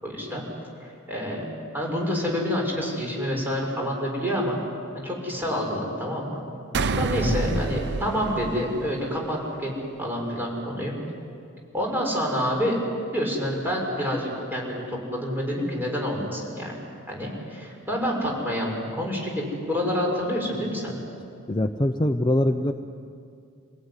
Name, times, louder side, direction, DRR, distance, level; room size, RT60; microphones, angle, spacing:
voice 1, 0.0-0.4 0.8-1.4 1.7-4.6 5.0-6.4 7.0-9.7 10.0-10.9 11.7-12.9 13.1-16.7 17.1-21.0, equal, 10° right, -2 dB, 6.5 m, -28 dB
sound 1, 6.7-9.3, right 3 dB, 55° right, 0.6 m, -28 dB
voice 2, 7.2-7.6 21.5-22.7, left 1 dB, 20° left, 6 dB, 0.7 m, -23 dB
27.5 x 18.5 x 9.9 m, 2.4 s
head